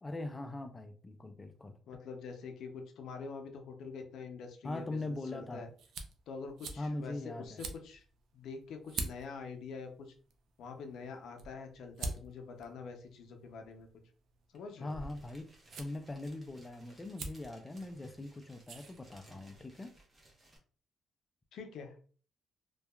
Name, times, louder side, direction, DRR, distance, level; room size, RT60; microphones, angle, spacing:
voice 1, 0.0-1.7 4.6-5.7 6.8-7.6 14.8-15.5 15.8-19.9, left 2 dB, 20° left, 0.3 m, -41 dB
voice 2, 1.9-5.7 6.3-8.0 8.3-10.1 10.6-13.9 14.5-14.9 21.5-22.0, left 5 dB, 75° left, 0.5 m, -45 dB
sound 1, 4.8-19.6, right 3 dB, 75° right, 0.4 m, -48 dB
sound 2, 14.5-14.6 14.8-20.6, right 1 dB, 25° right, 0.9 m, -57 dB
2.7 x 2.3 x 2.2 m
cardioid pair, 90°, 0 cm